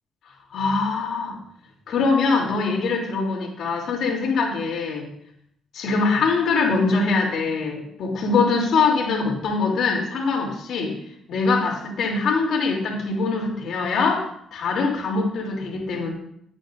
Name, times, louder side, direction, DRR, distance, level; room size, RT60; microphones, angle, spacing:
voice 1, 0.5-1.4 1.9-5.1 5.7-11.0 11.3-16.1, left 4 dB, 65° left, 0 dB, 3.0 m, -23 dB
15.5 x 8.4 x 2.6 m, 0.72 s
cardioid pair, 85°, 0 cm